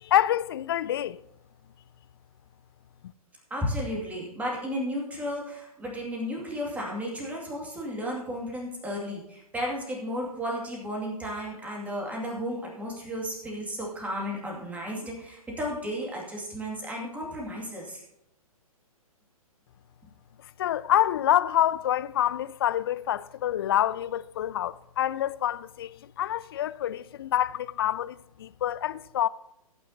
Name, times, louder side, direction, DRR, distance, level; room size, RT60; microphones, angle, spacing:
voice 1, 0.0-1.2 20.6-29.3, left 12 dB, 40° left, 0.4 m, -27 dB
voice 2, 3.5-18.0, equal, 10° right, 2.3 m, -33 dB
16.5 x 9.1 x 2.8 m
figure-of-eight pair, 120°, 19 cm